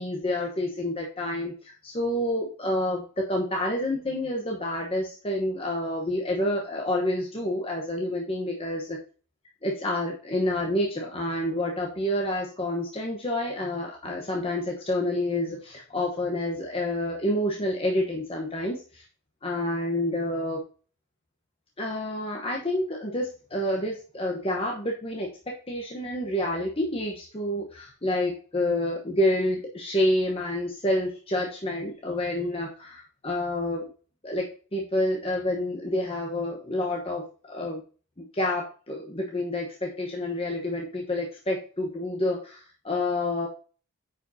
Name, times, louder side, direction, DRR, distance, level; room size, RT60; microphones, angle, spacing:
voice 1, 0.0-9.0 9.6-19.0 19.4-20.6 21.8-33.9 34.2-34.4 34.7-37.8 38.2-43.5, left 1 dB, 25° left, -1 dB, 0.9 m, -28 dB
8.9 x 5.0 x 2.7 m, 0.38 s
head